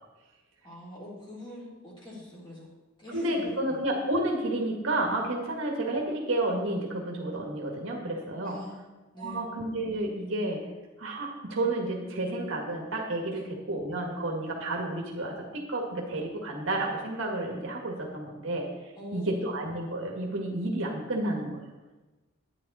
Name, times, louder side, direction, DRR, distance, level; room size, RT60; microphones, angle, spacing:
voice 1, 0.6-2.7 3.0-3.9 8.4-8.8 9.1-9.4 13.3-13.5 18.9-19.5, left 1 dB, 20° left, -5 dB, 3.3 m, -43 dB
voice 2, 3.1-8.6 9.2-10.7 11.0-21.6, right 1 dB, 75° right, 0 dB, 1.8 m, -31 dB
11.0 x 9.7 x 4.2 m, 1.2 s
head